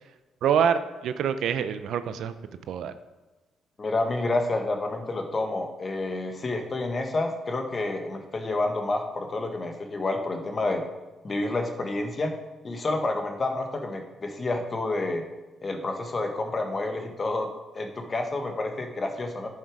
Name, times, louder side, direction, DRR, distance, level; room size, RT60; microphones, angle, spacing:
voice 1, 0.4-2.3 2.7-2.9, right 8 dB, 75° right, 11 dB, 0.6 m, -25 dB
voice 2, 3.8-10.8 11.2-12.3 12.6-15.2 15.6-17.5 17.7-19.5, left 2 dB, 35° left, 4 dB, 1.5 m, -29 dB
11.0 x 6.5 x 4.9 m, 1.1 s
cardioid pair, 90°, 0 cm